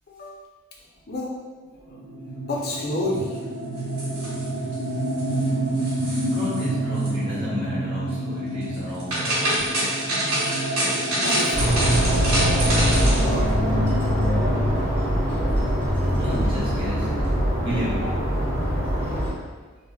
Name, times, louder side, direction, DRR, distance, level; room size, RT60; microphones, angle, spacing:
voice 1, 0.1-0.4 1.1-1.4 1.9-2.0 2.5-3.4 5.3-5.5 11.2-12.0 18.6-18.8, left 1 dB, 45° left, -2 dB, 0.4 m, -30 dB
sound 1, 1.9-17.5, right 1 dB, 50° right, 0.3 m, -30 dB
sound 2, 3.8-4.7 5.1-5.5 5.7-6.7 6.9-7.1 8.7-13.3, right 1 dB, 80° right, 1.1 m, -26 dB
voice 2, 6.2-9.8 14.7-14.9 16.1-17.1 17.6-18.0, left 1 dB, 25° right, -9 dB, 0.9 m, -31 dB
sound 3, 11.5-19.3, equal, 5° left, 0.7 m, -22 dB
3.4 x 2.0 x 2.3 m, 1.3 s
head